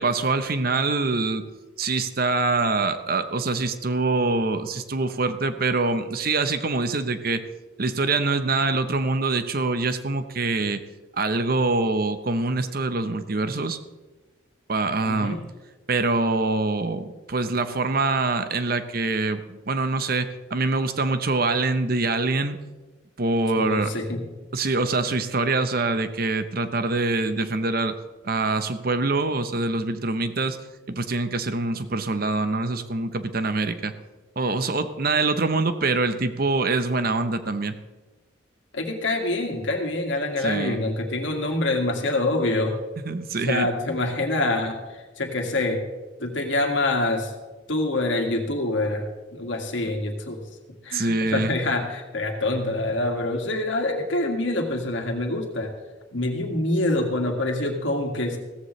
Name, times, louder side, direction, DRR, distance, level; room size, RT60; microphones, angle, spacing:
voice 1, 0.0-1.4 1.8-7.4 7.8-10.8 11.1-13.8 14.7-15.4 15.9-22.6 23.2-23.9 24.5-27.9 28.2-30.6 30.9-33.9 34.4-37.7 40.4-40.8 43.0-43.7 50.9-51.5, right 3 dB, 50° right, 10 dB, 0.9 m, -24 dB
voice 2, 15.0-15.5 23.6-24.2 38.7-42.8 43.5-45.9 46.2-47.3 47.7-50.4 50.8-55.7 56.1-58.4, left 2 dB, 80° left, 3 dB, 2.0 m, -26 dB
16.0 x 14.5 x 3.2 m, 1.2 s
head